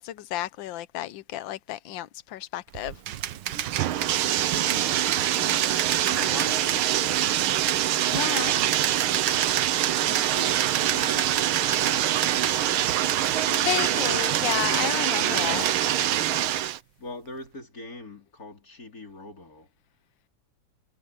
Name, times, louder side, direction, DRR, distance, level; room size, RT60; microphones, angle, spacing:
voice 1, 0.0-3.0 8.1-8.5 13.4-15.7, left 13 dB, 70° left, 1.4 m, -32 dB
Bathtub (filling or washing), 2.8-16.8, right 12 dB, 85° right, 1.7 m, -24 dB
sound 1, 3.1-14.9 15.3-15.9, right 10 dB, 65° right, 1.5 m, -34 dB
voice 2, 4.5-7.8 8.3-8.8 9.4-13.0 13.5-14.1 15.2-15.7 17.0-19.7, left 2 dB, 40° left, 4.7 m, -43 dB
omnidirectional pair, 2.3 m